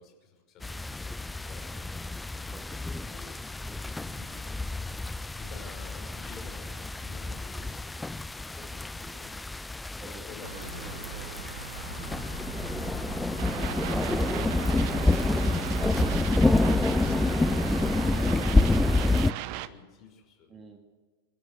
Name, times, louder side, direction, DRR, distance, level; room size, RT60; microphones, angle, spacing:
voice 1, 0.0-2.2 2.9-3.4 3.7-4.5 5.4-11.3 11.9-12.6 12.8-13.0 13.6-20.6, left 4 dB, 35° left, 3 dB, 5.4 m, -52 dB
sound 1, 0.6-19.3, left 2 dB, 5° left, 0.5 m, -28 dB
voice 2, 2.5-2.8 10.0-10.2 10.5-11.4 12.8-13.2 20.5-20.8, right 3 dB, 20° right, 3 dB, 2.7 m, -49 dB
sound 2, 10.4-18.0, right 5 dB, 70° right, 1.2 m, -41 dB
sound 3, 13.4-19.7, right 15 dB, 45° right, 0.9 m, -36 dB
27.0 x 12.5 x 8.0 m, 1.5 s
figure-of-eight pair, 90°, 0 cm